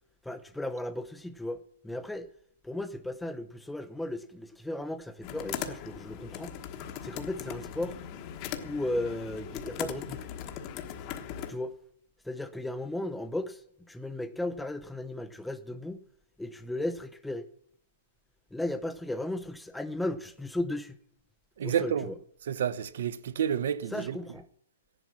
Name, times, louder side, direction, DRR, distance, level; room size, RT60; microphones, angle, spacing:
voice 1, 0.2-2.3 2.6-6.5 7.0-8.0 8.6-10.3 11.5-11.7 12.2-13.6 13.9-16.0 16.4-17.4 18.5-21.0 21.6-22.1 23.9-24.5, left 1 dB, 5° left, 0.6 m, -35 dB
sound 1, 5.2-11.5, left 9 dB, 25° left, 1.3 m, -39 dB
voice 2, 21.6-22.1 22.5-24.2, right 8 dB, 55° right, 1.0 m, -30 dB
15.5 x 11.0 x 6.2 m
hypercardioid pair, 165°, 0 cm